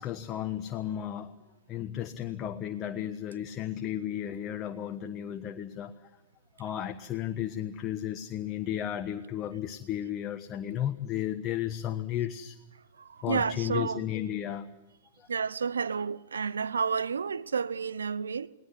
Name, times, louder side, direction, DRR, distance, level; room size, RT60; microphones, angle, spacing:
voice 1, 0.0-1.3 1.7-5.9 6.6-12.6 13.2-14.7 15.2-15.3, left 11 dB, 30° left, 1.2 m, -34 dB
voice 2, 13.0-14.0 15.3-18.5, right 6 dB, 80° right, 0.9 m, -31 dB
19.0 x 19.0 x 9.9 m
hypercardioid pair, 110°, 0 cm